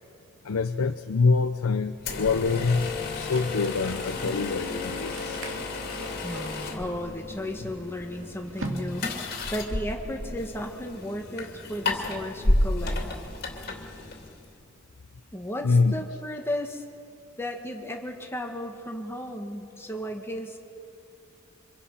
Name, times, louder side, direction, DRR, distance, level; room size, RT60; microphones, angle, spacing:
voice 1, 0.4-5.4 15.6-15.9, left 4 dB, 80° left, 7 dB, 0.7 m, -25 dB
sound 1, 2.0-14.5, left 2 dB, 50° left, 2.9 m, -32 dB
sound 2, 3.2-9.5, right 2 dB, 65° right, 2.3 m, -42 dB
sound 3, 4.1-8.9, left 1 dB, 80° right, 5.6 m, -44 dB
voice 2, 6.2-13.0 15.3-16.8 17.4-20.6, left 1 dB, 10° left, 2 dB, 2.0 m, -34 dB
29.5 x 26.0 x 5.8 m, 2.5 s
head